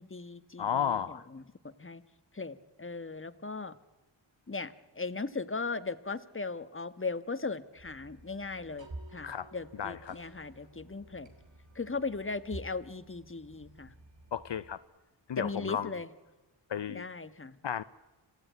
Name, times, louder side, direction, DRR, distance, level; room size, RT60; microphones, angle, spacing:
voice 1, 0.0-2.0 2.3-3.8 4.5-11.3 11.7-13.9 15.4-16.1 16.9-17.6, left 3 dB, 25° left, 13 dB, 1.3 m, -38 dB
voice 2, 0.6-1.2 9.2-9.5 9.8-10.2 14.3-14.8 15.3-15.9 16.7-17.1 17.6-17.8, left 8 dB, 65° left, 13 dB, 0.7 m, -33 dB
sound 1, 7.7-14.8, right 2 dB, 70° right, 3.3 m, -51 dB
26.5 x 15.5 x 9.4 m, 1.1 s
cardioid pair, 40°, 47 cm